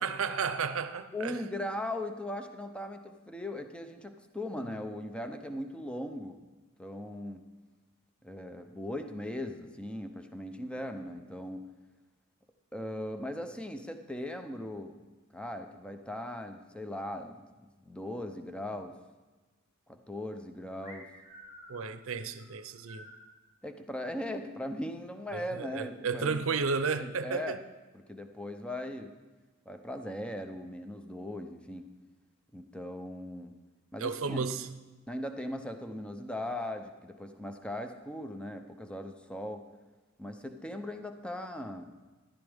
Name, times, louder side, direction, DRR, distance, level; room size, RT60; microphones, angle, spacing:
voice 1, 0.0-1.4 21.7-23.1 25.3-27.6 34.0-34.8, right 5 dB, 70° right, 0.6 m, -33 dB
voice 2, 1.1-6.4 6.8-7.4 8.2-11.7 12.7-15.0 15.3-19.0 19.9-21.1 23.6-26.4 26.9-27.6 27.9-29.1 29.7-31.9 32.5-33.5 33.9-34.4 35.1-39.6 40.2-41.9, left 1 dB, 5° left, 0.6 m, -39 dB
sound 1, 20.8-23.3, equal, 50° left, 3.3 m, -51 dB
13.5 x 11.5 x 3.5 m
head